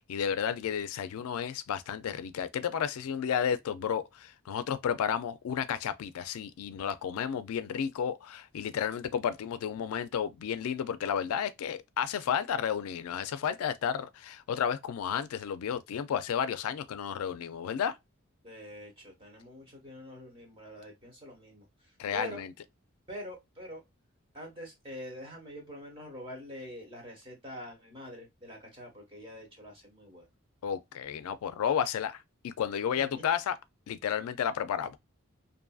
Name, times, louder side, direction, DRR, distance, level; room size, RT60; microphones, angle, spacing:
voice 1, 0.0-18.0 22.0-22.5 30.6-33.6 33.9-35.0, left 8 dB, 85° left, 0.3 m, -32 dB
voice 2, 18.4-22.4 23.1-23.8 24.3-30.3 32.9-33.2, equal, 25° right, 1.1 m, -45 dB
2.6 x 2.5 x 2.3 m
head